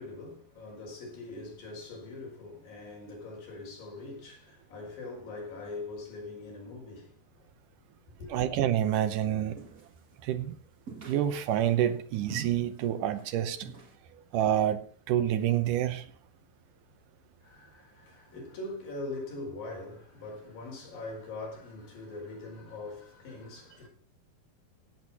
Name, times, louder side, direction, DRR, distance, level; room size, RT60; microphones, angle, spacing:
voice 1, 0.0-7.5 8.2-8.5 17.4-23.9, left 2 dB, 75° left, 6.4 m, -42 dB
voice 2, 8.3-9.7 10.2-10.6 11.1-13.7 14.3-16.1, right 11 dB, 70° right, 2.3 m, -28 dB
sound 1, 9.6-10.1 10.9-11.7 12.3-12.8 13.1-13.3 13.6-14.0, right 5 dB, 35° right, 1.5 m, -43 dB
17.0 x 7.9 x 4.2 m
omnidirectional pair, 4.0 m